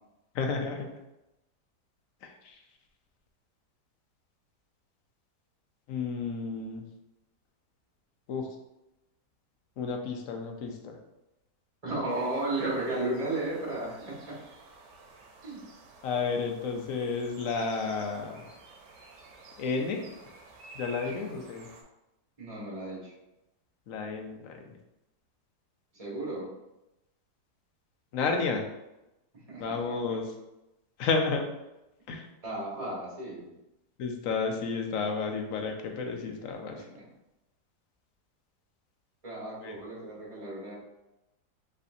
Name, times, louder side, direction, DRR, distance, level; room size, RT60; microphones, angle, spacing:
voice 1, 0.3-1.0 2.2-2.6 5.9-6.8 8.3-8.5 9.8-11.0 16.0-18.4 19.6-20.2 20.7-21.7 23.9-24.8 28.1-28.6 29.6-30.3 31.0-31.5 32.1-32.3 34.0-36.9 39.6-39.8, left 4 dB, 65° left, 3 dB, 0.9 m, -31 dB
voice 2, 11.8-14.3 15.4-15.6 21.1-21.2 22.4-23.1 25.9-26.5 29.5-30.2 32.4-33.5 36.9-37.0 39.2-40.8, right 2 dB, 20° right, -5 dB, 1.4 m, -34 dB
sound 1, 12.1-21.8, right 3 dB, 85° right, 1.3 m, -52 dB
5.3 x 3.3 x 2.7 m, 0.94 s
omnidirectional pair, 1.8 m